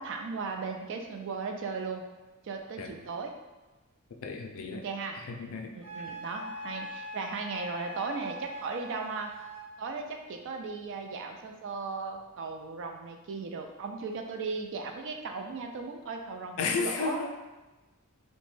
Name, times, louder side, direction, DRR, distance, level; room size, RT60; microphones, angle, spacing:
voice 1, 0.0-2.1 2.4-3.3 4.7-5.2 5.7-9.3 9.8-17.3, right 4 dB, 55° right, 4 dB, 0.3 m, -37 dB
voice 2, 4.2-4.8 5.4-5.7 16.6-17.3, left 4 dB, 65° left, 3 dB, 0.4 m, -32 dB
Wind instrument woodwind instrument, 5.8-9.7, left 1 dB, 75° right, 0.7 m, -42 dB
2.9 x 2.1 x 3.1 m, 1.1 s
head